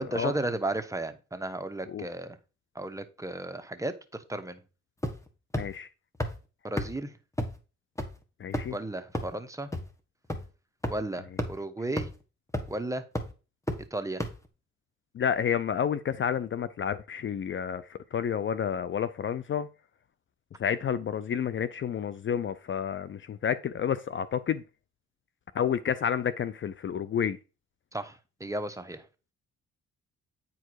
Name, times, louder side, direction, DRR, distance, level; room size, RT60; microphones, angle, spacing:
voice 1, 0.0-2.4 2.7-4.6 6.6-7.1 8.7-9.7 10.9-12.1 12.7-13.0 13.9-14.2 27.9-29.0, right 2 dB, 10° right, 1.0 m, -34 dB
sound 1, 5.0-5.3 5.5-5.6 6.2-6.3 6.8-6.9 7.4-7.5 8.0-8.1 8.5-8.8 9.1-9.2 9.7-9.8 10.3-10.4 10.8-10.9 11.4-11.5 12.0-12.1 12.5-12.8 13.1-13.2 13.7-13.8 14.2-14.3, left 1 dB, 10° left, 1.5 m, -29 dB
voice 2, 5.6-5.9 8.4-8.7 15.1-19.7 20.6-24.6 25.5-27.4, left 8 dB, 40° left, 0.5 m, -30 dB
9.5 x 4.6 x 4.6 m
cardioid pair, 90°, 30 cm